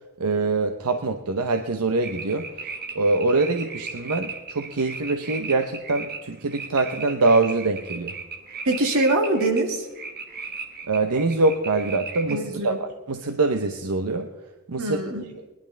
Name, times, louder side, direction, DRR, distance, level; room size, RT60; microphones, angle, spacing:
voice 1, 0.2-2.5 2.9-8.1 10.9-14.3 14.7-15.0, right 3 dB, 85° right, 6 dB, 0.8 m, -24 dB
sound 1, 2.0-12.4, right 4 dB, 45° right, 1.4 m, -37 dB
voice 2, 8.7-9.9 12.3-12.8 14.8-15.2, right 2 dB, 65° right, 2 dB, 2.1 m, -23 dB
20.5 x 11.0 x 3.4 m, 1.0 s
head